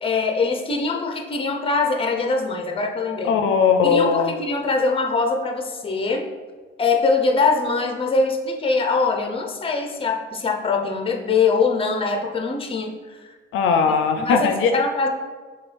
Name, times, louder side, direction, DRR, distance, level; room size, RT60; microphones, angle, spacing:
voice 1, 0.0-3.3 3.8-6.3 6.8-13.3 14.1-15.1, left 4 dB, 25° left, 2 dB, 0.6 m, -23 dB
voice 2, 3.2-4.4 13.5-14.8, left 6 dB, 85° left, 6 dB, 0.4 m, -19 dB
6.5 x 2.3 x 3.3 m, 1.4 s
cardioid pair, 90°, 20 cm